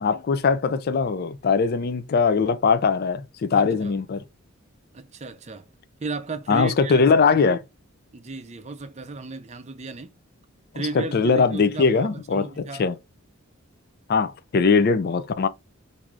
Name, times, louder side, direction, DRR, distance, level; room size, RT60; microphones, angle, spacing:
voice 1, 0.0-4.2 6.5-7.6 10.9-13.0 14.1-15.5, left 5 dB, 45° left, 0.4 m, -21 dB
voice 2, 3.5-3.9 4.9-5.7 6.0-7.0 8.1-10.1 10.7-12.9, right 3 dB, 30° right, 0.5 m, -34 dB
4.5 x 2.6 x 2.4 m
head